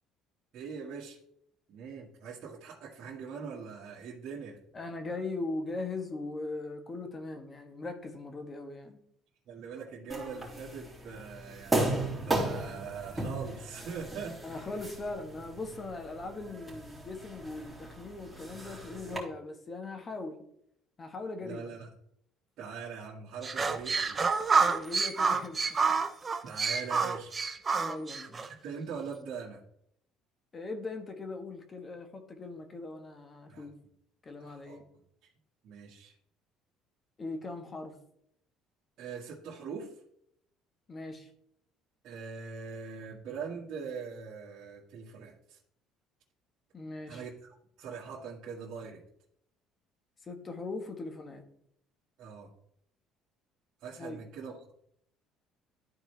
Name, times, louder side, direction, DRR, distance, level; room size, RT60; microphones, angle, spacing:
voice 1, 0.5-1.2 1.7-4.6 9.5-14.6 21.4-21.9 22.6-24.6 26.4-27.4 28.3-29.6 33.5-33.6 34.4-34.8 35.6-36.1 39.0-40.0 42.0-45.6 47.1-47.3 47.8-49.0 52.2-52.5 53.8-54.7, right 6 dB, 60° right, -6 dB, 1.8 m, -42 dB
voice 2, 4.7-9.0 14.4-20.4 21.0-21.6 24.5-25.9 27.8-28.4 30.5-33.7 34.2-34.8 37.2-38.0 40.9-41.3 46.7-47.2 50.2-51.4 54.0-54.2, left 3 dB, 30° left, 6 dB, 1.4 m, -40 dB
sound 1, 10.1-19.2, right 2 dB, 5° right, 3.4 m, -36 dB
sound 2, 23.4-28.5, right 5 dB, 30° right, 0.7 m, -28 dB
13.0 x 4.6 x 3.4 m, 0.71 s
cardioid pair, 110°, 0 cm